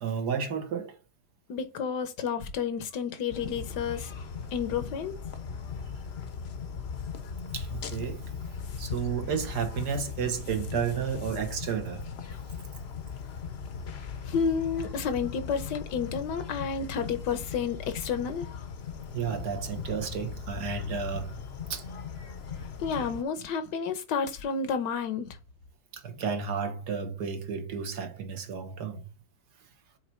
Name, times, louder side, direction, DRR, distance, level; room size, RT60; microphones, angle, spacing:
voice 1, 0.0-0.9 7.5-8.2 8.8-12.0 19.1-21.4 21.7-21.8 25.9-29.1, right 6 dB, 70° right, 1.7 m, -32 dB
voice 2, 1.5-4.1 4.5-5.2 14.3-18.5 22.8-25.4, left 6 dB, 80° left, 1.5 m, -30 dB
sound 1, 3.3-23.2, left 6 dB, 50° left, 0.8 m, -38 dB
5.9 x 4.1 x 4.3 m
omnidirectional pair, 1.8 m